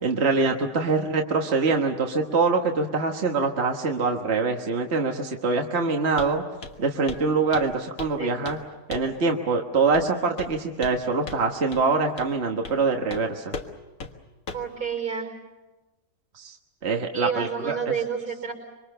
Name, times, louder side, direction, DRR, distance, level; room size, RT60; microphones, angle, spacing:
voice 1, 0.0-6.4 6.8-8.6 8.9-13.6 16.3-16.5 16.8-17.8, right 4 dB, 45° right, 2 dB, 1.6 m, -24 dB
Walk footsteps, 6.2-6.4 6.6-6.8 7.1-7.3 7.5-8.2 8.5-8.6 8.9-9.2 9.9-10.1 10.4-11.0 11.3-11.4 11.7-11.8 12.2-12.3 12.7-12.8 13.1-13.2 13.5-13.7 14.0-14.1 14.5-14.7, left 3 dB, 60° left, 2.0 m, -37 dB
voice 2, 14.5-15.3 17.1-18.5, right 7 dB, 80° right, 1 dB, 5.6 m, -29 dB
26.5 x 24.5 x 6.8 m, 1.1 s
omnidirectional pair, 1.7 m